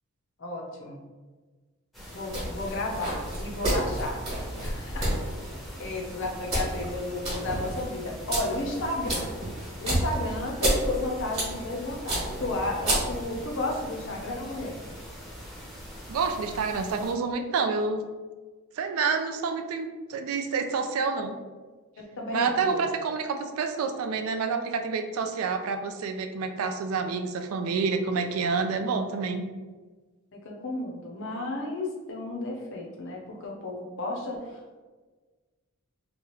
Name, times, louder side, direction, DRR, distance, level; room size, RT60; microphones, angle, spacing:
voice 1, 0.4-1.0 2.1-4.2 4.6-5.1 5.8-9.3 9.8-14.8 22.0-22.8 30.4-34.8, left 2 dB, 55° left, 0 dB, 0.6 m, -33 dB
sound 1, 1.9-17.1, equal, ahead, 0.7 m, -43 dB
sound 2, 2.3-13.5, right 1 dB, 30° right, 1.1 m, -31 dB
voice 2, 16.1-18.0 18.8-21.4 22.3-29.5, right 5 dB, 70° right, 7 dB, 0.3 m, -28 dB
3.0 x 2.3 x 3.0 m, 1.3 s
head